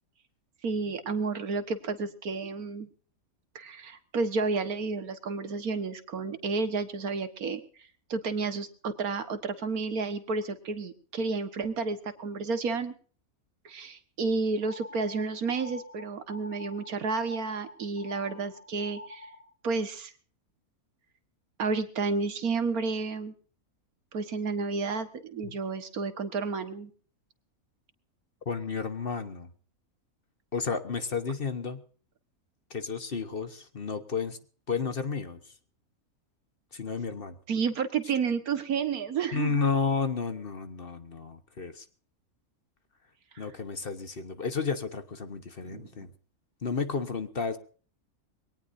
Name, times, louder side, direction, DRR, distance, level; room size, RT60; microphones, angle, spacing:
voice 1, 0.6-2.9 3.6-7.6 8.1-12.9 13.7-19.3 19.6-20.1 21.6-23.3 24.1-26.9 37.5-39.6 45.7-45.9, right 4 dB, 80° right, 10 dB, 1.9 m, -31 dB
sound 1, 14.6-19.5, left 1 dB, 60° left, 3.2 m, -45 dB
voice 2, 28.4-29.5 30.5-31.8 32.7-34.4 34.7-35.5 36.7-37.4 39.3-41.8 43.4-46.1 46.6-47.6, left 5 dB, 40° left, 10 dB, 1.3 m, -32 dB
23.0 x 18.0 x 2.7 m, 0.41 s
omnidirectional pair, 1.5 m